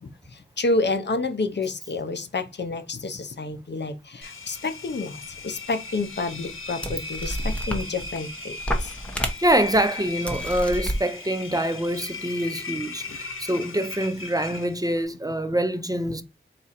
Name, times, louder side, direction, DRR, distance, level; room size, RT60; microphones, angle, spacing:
voice 1, 0.0-8.9, left 3 dB, 55° left, 0.6 m, -29 dB
Engine, 4.2-15.0, left 4 dB, 85° left, 0.9 m, -38 dB
sound 1, 5.7-5.8 6.5-6.6 6.8-8.2 8.6-9.8 10.3-11.0, equal, 5° left, 0.8 m, -29 dB
voice 2, 9.4-16.2, right 1 dB, 15° right, 0.5 m, -25 dB
4.2 x 2.5 x 4.2 m
wide cardioid pair, 80°, 21 cm